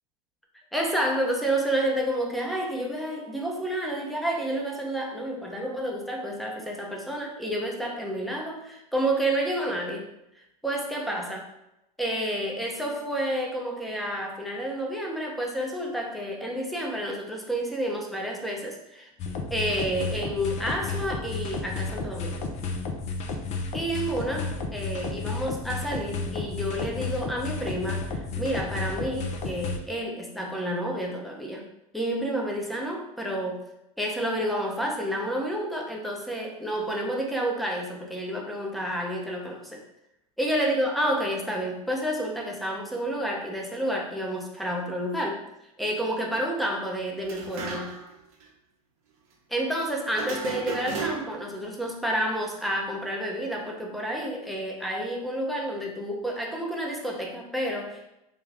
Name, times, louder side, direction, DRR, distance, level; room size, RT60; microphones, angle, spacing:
voice 1, 0.7-10.1 10.3-11.5 12.0-19.1 19.5-22.5 23.7-31.6 31.9-33.6 34.0-39.8 40.4-45.4 45.8-48.0 49.5-58.1, right 1 dB, ahead, -1 dB, 0.7 m, -30 dB
sound 1, 19.2-29.8, left 3 dB, 35° left, 0.5 m, -32 dB
sound 2, 47.2-48.1 48.4-48.5 50.1-51.5, right 4 dB, 70° right, 0.9 m, -34 dB
3.4 x 2.3 x 3.6 m, 0.87 s
hypercardioid pair, 95°, 19 cm